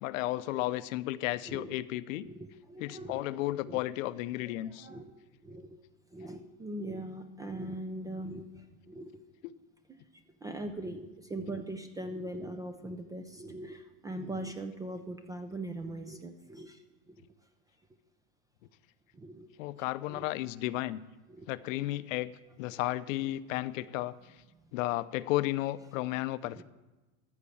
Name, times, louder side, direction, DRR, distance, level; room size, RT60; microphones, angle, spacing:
voice 1, 0.0-2.3 2.8-4.9 9.4-9.5 19.6-21.0 21.5-22.3 22.6-24.2 24.7-26.6, left 16 dB, 70° left, 15 dB, 0.6 m, -33 dB
voice 2, 2.2-3.2 3.7-3.8 4.7-5.1 5.4-5.7 6.1-9.1 9.9-10.0 10.4-16.8 17.1-17.2 19.1-19.5 20.1-20.2 21.3-21.5 26.6-26.7, right 1 dB, 10° right, 7 dB, 0.3 m, -41 dB
13.5 x 6.6 x 7.1 m, 1.1 s
supercardioid pair, 135°, 41 cm